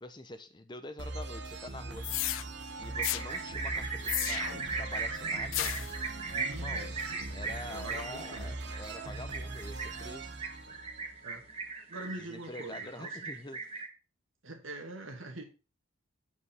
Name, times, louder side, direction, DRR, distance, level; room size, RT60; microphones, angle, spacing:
voice 1, 0.0-2.1 2.8-5.7 6.6-7.0 7.3-10.4 12.0-13.6, left 1 dB, 20° left, 10 dB, 0.8 m, -46 dB
sound 1, 1.0-11.6, right 2 dB, 55° right, 1.1 m, -41 dB
sound 2, 2.0-2.4 3.0-3.2 4.0-4.7 5.5-5.9, left 15 dB, 80° left, 0.5 m, -33 dB
sound 3, 2.9-13.9, right 4 dB, 30° right, 1.5 m, -38 dB
voice 2, 6.3-7.3 7.7-8.5 10.7-10.8 11.2-11.4 11.9-13.2 14.4-15.4, right 2 dB, 80° right, 3 dB, 2.3 m, -44 dB
8.4 x 5.1 x 5.6 m, 0.32 s
head